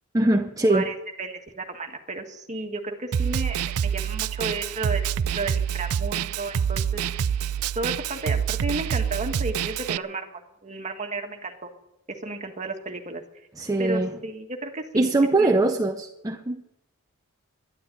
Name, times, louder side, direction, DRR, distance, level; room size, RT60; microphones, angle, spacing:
voice 1, 0.1-0.9 13.6-14.2 14.9-16.6, right 2 dB, 15° right, 5 dB, 0.7 m, -22 dB
voice 2, 0.7-7.0 7.7-10.3 10.6-11.7 12.1-13.2 13.8-15.1 15.4-15.5, right 3 dB, 35° right, 4 dB, 1.6 m, -33 dB
Snare drum, 3.1-10.0, right 8 dB, 85° right, 0.4 m, -27 dB
12.0 x 11.5 x 8.4 m, 0.88 s
head